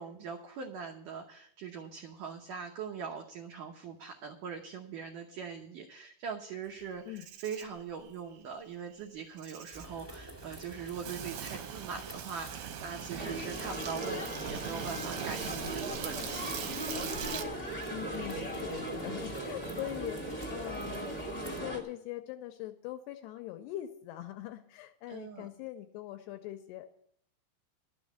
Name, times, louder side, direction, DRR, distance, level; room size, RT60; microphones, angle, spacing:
voice 1, 0.0-16.7 19.7-19.8 25.1-25.5, right 6 dB, 90° right, 2 dB, 1.8 m, -42 dB
Insect, 6.8-17.4, right 9 dB, 70° right, 2.7 m, -42 dB
sound 1, 9.7-21.6, right 1 dB, 5° right, 1.1 m, -50 dB
sound 2, 13.2-21.8, right 1 dB, 35° left, 0.6 m, -38 dB
voice 2, 17.9-26.9, left 14 dB, 80° left, 7 dB, 2.5 m, -42 dB
12.0 x 6.4 x 9.1 m, 0.66 s
omnidirectional pair, 5.3 m